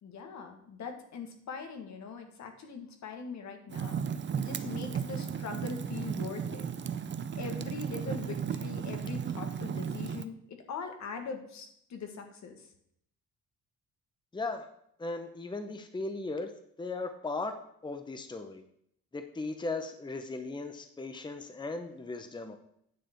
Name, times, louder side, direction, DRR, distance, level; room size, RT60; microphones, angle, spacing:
voice 1, 0.0-4.0 4.4-6.7 7.4-12.7, left 5 dB, 65° left, 5 dB, 1.7 m, -41 dB
Fire, 3.7-10.2, right 7 dB, 40° right, 0.6 m, -35 dB
voice 2, 14.3-14.7 15.0-16.5 16.8-17.6 17.8-18.6 19.1-22.6, left 3 dB, 15° left, 7 dB, 0.8 m, -37 dB
9.4 x 6.7 x 4.5 m, 0.70 s
cardioid pair, 90°, 30 cm